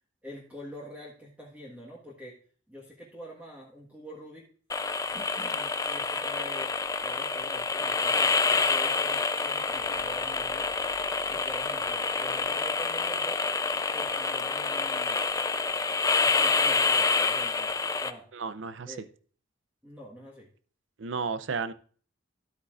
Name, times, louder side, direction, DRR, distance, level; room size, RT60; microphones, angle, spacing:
voice 1, 0.2-2.4 2.7-4.5 5.1-6.7 7.0-10.7 11.2-13.4 13.9-15.2 16.2-17.7 18.0-18.3 18.8-19.1 19.8-20.5, equal, 10° right, 1.4 m, -45 dB
sound 1, 4.7-18.1, left 4 dB, 20° left, 0.4 m, -27 dB
voice 2, 18.3-18.9 21.0-21.7, right 5 dB, 75° right, 0.6 m, -33 dB
12.0 x 8.3 x 2.5 m
head